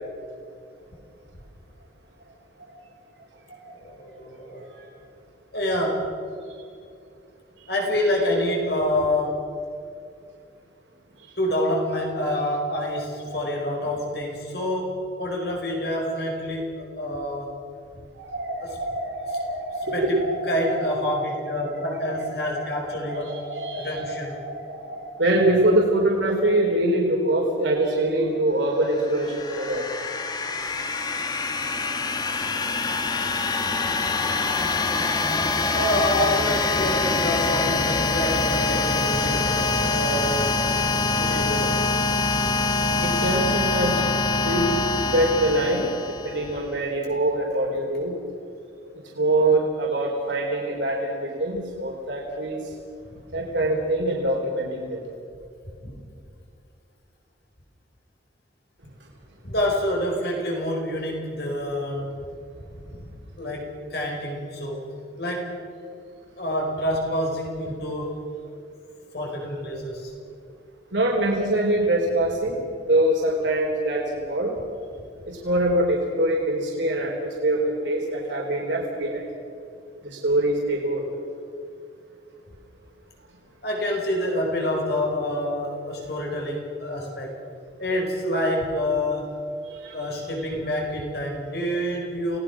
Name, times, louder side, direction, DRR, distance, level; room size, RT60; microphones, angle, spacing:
voice 1, 3.8-4.6 5.5-6.1 7.7-9.4 11.4-17.6 18.6-18.7 19.9-20.2 20.5-23.4 23.8-24.4 35.7-39.5 39.9-40.6 41.2-41.7 55.8-56.0 59.4-62.3 62.9-63.1 63.4-64.9 65.2-65.6 66.4-68.2 69.1-70.1 83.6-87.4 87.8-89.3 89.9-92.4, left 1 dB, 60° left, 0 dB, 4.9 m, -27 dB
voice 2, 12.9-13.4 18.1-20.8 21.3-21.7 22.0-29.8 42.7-44.0 44.4-44.8 45.1-48.2 49.2-52.7 53.3-55.0 69.5-69.6 70.9-72.5 72.9-74.5 75.3-79.3 80.0-81.0 89.7-90.1 90.4-90.5, right 1 dB, 85° right, -2 dB, 3.9 m, -24 dB
sound 1, 28.9-46.6, left 3 dB, 20° left, 1.1 m, -24 dB
28.5 x 18.5 x 6.1 m, 2.5 s
head